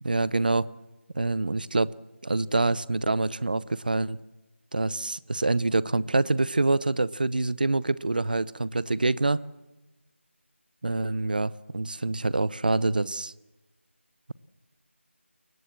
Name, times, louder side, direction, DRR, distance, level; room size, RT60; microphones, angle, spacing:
voice 1, 0.0-0.7 1.1-2.0 2.2-4.2 4.7-9.4 10.8-13.3, right 2 dB, 40° right, 0.8 m, -26 dB
28.5 x 22.0 x 7.6 m
figure-of-eight pair, 175°, 7 cm